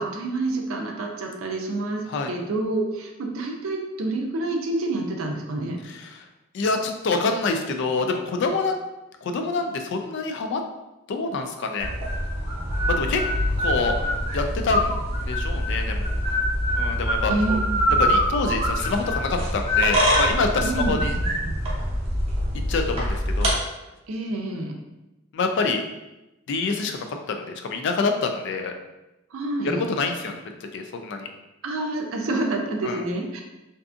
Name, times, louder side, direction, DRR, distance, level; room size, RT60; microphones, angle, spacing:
voice 1, 0.0-5.8 17.3-17.9 20.6-21.0 24.1-24.8 29.3-29.9 31.6-33.4, right 2 dB, 90° right, 2 dB, 0.5 m, -28 dB
voice 2, 5.8-6.2 6.5-8.8 9.2-10.6 11.1-11.9 12.9-13.2 13.6-14.0 14.3-15.0 15.2-16.1 16.7-17.6 18.0-21.1 22.7-23.6 25.3-25.8 26.5-28.7 29.6-30.4 30.7-31.3 32.8-33.0, left 4 dB, 60° left, 5 dB, 0.3 m, -26 dB
sound 1, 11.8-23.5, equal, 30° right, 0.6 m, -24 dB
2.6 x 2.4 x 2.4 m, 0.98 s
head